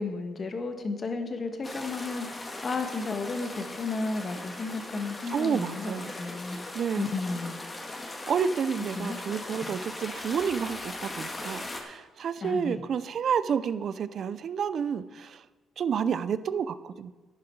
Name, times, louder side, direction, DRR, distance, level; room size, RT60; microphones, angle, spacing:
voice 1, 0.0-6.6 7.0-7.6 8.9-9.2 9.6-9.7 12.4-12.8, left 3 dB, 40° left, 6 dB, 1.5 m, -33 dB
sound 1, 1.6-11.8, left 2 dB, 20° left, 1.8 m, -39 dB
voice 2, 5.3-6.1 6.7-7.1 8.3-15.4 15.8-17.1, right 7 dB, 60° right, 14 dB, 0.5 m, -30 dB
11.5 x 9.7 x 4.7 m, 1.3 s
cardioid pair, 90°, 0 cm